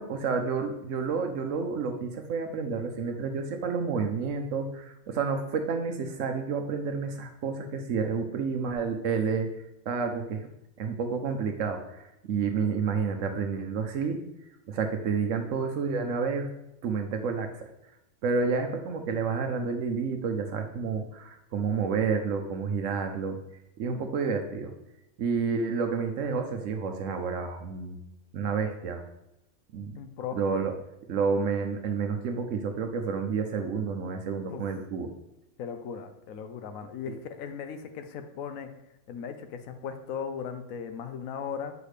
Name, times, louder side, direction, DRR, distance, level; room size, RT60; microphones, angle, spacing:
voice 1, 0.0-9.5 9.9-10.5 10.8-14.2 14.7-16.5 16.8-17.7 18.2-23.4 23.8-24.7 25.2-28.0 28.3-29.1 29.7-30.0 30.3-30.7 31.1-35.1 37.1-37.2, right 5 dB, 75° right, 5 dB, 1.0 m, -30 dB
voice 2, 30.0-30.4 34.5-34.6 35.6-38.7 39.1-41.7, left 7 dB, 90° left, 7 dB, 1.1 m, -37 dB
8.0 x 4.8 x 3.3 m, 0.85 s
omnidirectional pair, 1.4 m